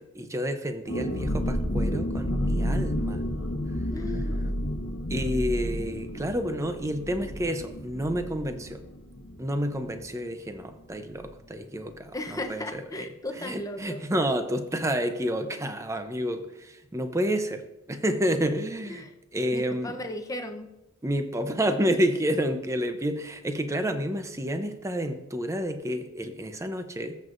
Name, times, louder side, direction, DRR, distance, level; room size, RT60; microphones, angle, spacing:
voice 1, 0.2-3.2 5.1-8.8 9.4-13.1 13.4-17.6 17.9-19.1 19.3-19.9 21.0-27.2, equal, 15° right, 7 dB, 0.7 m, -29 dB
sound 1, 0.9-10.3 10.5-10.6 11.0-11.3, equal, 65° left, 1.1 m, -30 dB
voice 2, 3.9-4.4 12.1-14.0 18.9-19.1 19.5-20.7, left 1 dB, 15° left, 4 dB, 0.8 m, -36 dB
14.0 x 7.5 x 2.6 m, 0.94 s
head